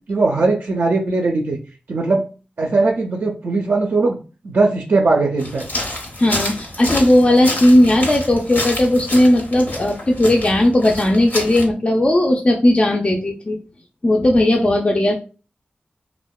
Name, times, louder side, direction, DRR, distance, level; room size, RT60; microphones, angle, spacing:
voice 1, 0.1-1.6 1.9-2.2 2.6-4.2 4.4-5.7, right 3 dB, 70° right, 0 dB, 0.4 m, -19 dB
sound 1, 5.4-11.6, left 1 dB, 70° left, 0.7 m, -28 dB
voice 2, 6.2-13.6 14.0-15.1, left 1 dB, 35° left, 0 dB, 0.3 m, -16 dB
2.7 x 2.1 x 2.2 m, 0.35 s
wide cardioid pair, 60°, 3 cm